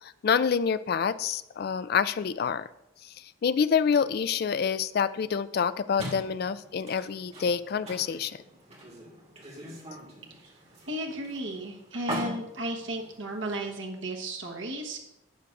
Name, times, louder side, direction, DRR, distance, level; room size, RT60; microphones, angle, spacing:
voice 1, 0.0-2.7 3.0-8.4, left 6 dB, 50° left, 15 dB, 0.3 m, -27 dB
sound 1, 6.0-13.7, equal, 35° right, 1.8 m, -42 dB
voice 2, 10.9-15.0, right 1 dB, 75° right, 1 dB, 1.2 m, -34 dB
12.0 x 8.3 x 2.5 m, 0.87 s
head